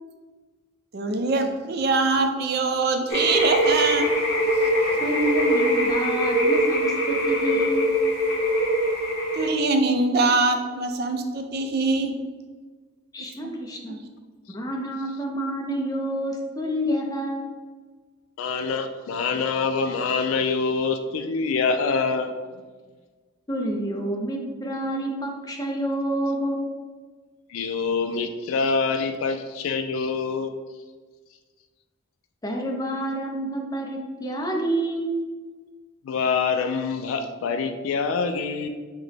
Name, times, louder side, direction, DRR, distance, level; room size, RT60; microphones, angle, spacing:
voice 1, 0.9-4.1 9.4-12.2 13.4-13.5 13.9-14.0, right 3 dB, 50° right, 6 dB, 0.4 m, -23 dB
sound 1, 3.1-9.5, equal, 55° left, 0.9 m, -22 dB
voice 2, 5.0-8.0 13.1-14.0 14.5-17.5 23.5-26.7 32.4-35.2, right 1 dB, 20° left, 1 dB, 0.5 m, -28 dB
voice 3, 18.4-22.3 27.5-30.5 36.0-38.7, left 4 dB, 85° left, 8 dB, 0.3 m, -25 dB
5.8 x 2.1 x 3.3 m, 1.4 s
head